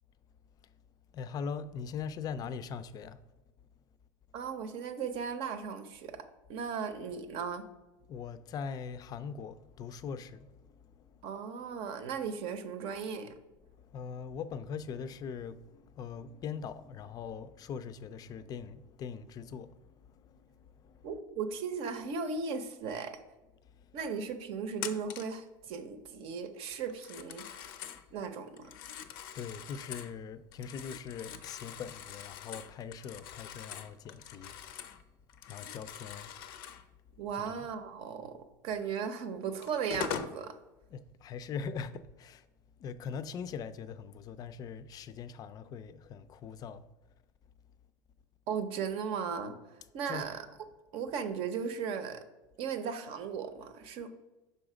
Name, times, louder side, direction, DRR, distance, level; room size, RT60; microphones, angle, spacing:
voice 1, 1.1-3.2 8.1-11.3 13.6-21.2 23.7-24.1 29.3-35.0 35.5-36.3 37.3-37.7 40.9-42.5 42.8-46.8 50.0-50.3, left 6 dB, 35° left, 0.4 m, -42 dB
voice 2, 4.3-6.1 6.5-7.6 11.2-13.3 21.0-23.2 23.9-27.7 28.1-28.7 37.2-38.4 38.6-40.5 48.5-49.6 49.9-50.5 50.9-52.2 52.6-54.1, right 6 dB, 55° right, 0.7 m, -36 dB
Telephone, 24.8-25.4 26.9-28.0 28.6-30.1 30.5-35.0 35.3-36.8 38.9-39.0 39.6-40.4, left 8 dB, 85° left, 0.5 m, -43 dB
5.6 x 3.9 x 4.9 m
supercardioid pair, 120°, 11 cm